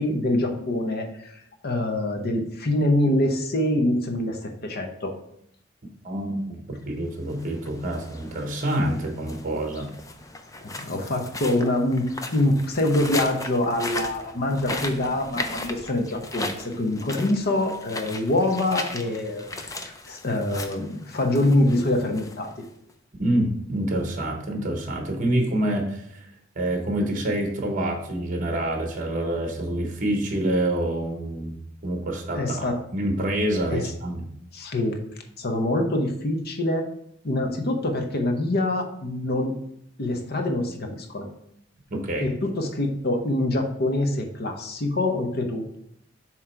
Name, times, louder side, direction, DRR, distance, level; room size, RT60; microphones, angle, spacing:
voice 1, 0.0-5.1 10.6-12.0 12.3-19.5 19.7-22.5 32.3-32.7 33.7-33.9 34.5-35.0 35.4-36.8 37.2-39.5 40.0-41.3 42.2-45.8, left 1 dB, 55° left, 4 dB, 0.9 m, -25 dB
voice 2, 6.0-9.9 23.2-26.3 26.5-31.5 31.8-34.3 41.9-42.3, right 1 dB, 40° right, 2 dB, 1.2 m, -27 dB
sound 1, 7.2-22.9, left 2 dB, 15° left, 0.5 m, -37 dB
7.5 x 3.1 x 4.5 m, 0.72 s
head